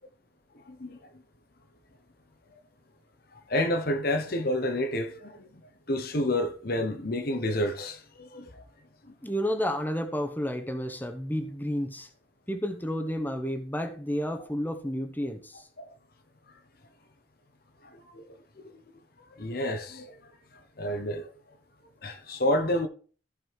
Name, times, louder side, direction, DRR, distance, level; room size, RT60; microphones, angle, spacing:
voice 1, 0.7-1.1 3.3-5.5 5.9-8.6 9.1-9.2 15.8-15.9 17.8-18.2 18.7-18.8 19.4-20.2 20.8-21.3 22.0-22.9, left 1 dB, 50° left, 1.0 m, -29 dB
voice 2, 9.2-12.1 12.5-15.6, equal, 10° left, 1.1 m, -31 dB
14.5 x 5.4 x 4.7 m
head